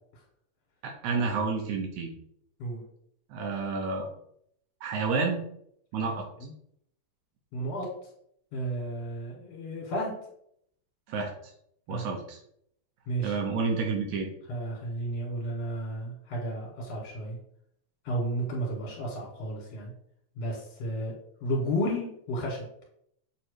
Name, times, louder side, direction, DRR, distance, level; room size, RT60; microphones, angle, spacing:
voice 1, 0.8-2.1 3.3-4.1 4.8-5.4 5.9-6.3 11.1-11.3 11.9-12.4 13.2-14.3, right 4 dB, 80° right, 3 dB, 2.2 m, -29 dB
voice 2, 6.1-6.5 7.5-7.9 8.5-10.1 11.9-12.0 13.1-13.4 14.5-17.4 18.0-19.9 20.4-21.1 21.4-22.6, right 1 dB, 60° left, -3 dB, 2.6 m, -32 dB
7.2 x 3.1 x 4.7 m, 0.71 s
omnidirectional pair, 3.4 m